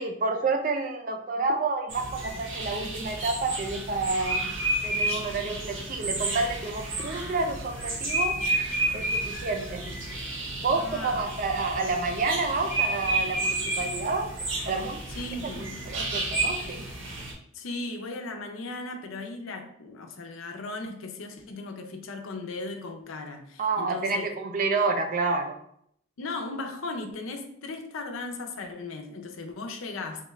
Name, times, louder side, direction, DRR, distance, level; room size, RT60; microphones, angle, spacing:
voice 1, 0.0-4.5 4.8-8.4 8.9-9.9 10.6-14.3 14.7-15.0 15.6-16.8 23.6-25.6, right 3 dB, 40° right, 5 dB, 0.4 m, -29 dB
Bird Sanctuary NJ (loop), 1.9-17.3, right 2 dB, 70° right, 0.8 m, -31 dB
voice 2, 10.7-11.2 15.2-15.8 17.5-24.3 26.2-30.3, left 3 dB, 90° left, 4 dB, 0.5 m, -37 dB
3.6 x 2.3 x 3.1 m, 0.69 s
head